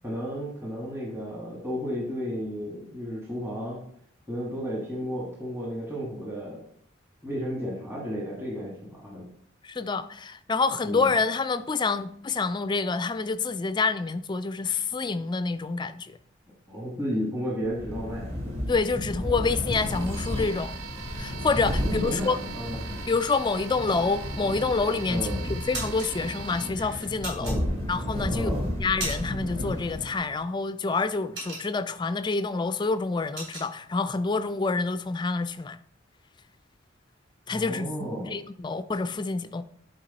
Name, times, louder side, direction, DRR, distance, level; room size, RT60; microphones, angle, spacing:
voice 1, 0.0-3.8 4.3-6.6 7.2-9.2 10.8-11.1 16.7-18.3 21.8-22.8 25.1-25.4 27.3-27.7 28.3-28.7 37.5-38.3, equal, 10° right, 1.5 m, -33 dB
voice 2, 9.6-16.2 18.7-20.8 21.2-22.4 23.1-27.5 27.9-35.8 37.5-39.6, left 4 dB, 20° left, 0.3 m, -27 dB
sound 1, 17.6-30.3, left 1 dB, 35° right, 2.6 m, -33 dB
sound 2, 19.7-27.1, right 6 dB, 75° right, 0.8 m, -42 dB
sound 3, 25.7-26.1 27.2-28.1 28.5-29.5 29.8-30.0 30.4-32.1 32.5-32.6 32.9-33.7, right 2 dB, 60° right, 3.9 m, -36 dB
10.5 x 4.7 x 4.0 m
head